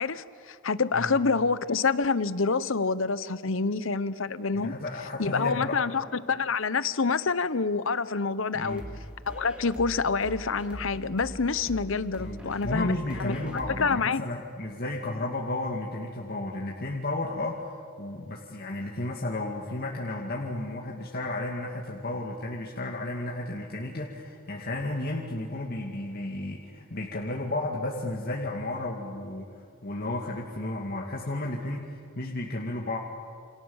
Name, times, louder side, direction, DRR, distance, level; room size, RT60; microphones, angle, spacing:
voice 1, 0.0-4.7 5.2-8.8 9.3-12.9 13.2-13.4 13.8-14.2, left 4 dB, 65° left, 15 dB, 0.9 m, -27 dB
voice 2, 4.5-5.7 8.5-8.9 12.2-29.5 29.8-33.0, left 2 dB, 45° left, -2 dB, 2.4 m, -33 dB
sound 1, 8.7-14.0, equal, 5° right, 2.7 m, -42 dB
28.5 x 28.5 x 7.3 m, 2.3 s
head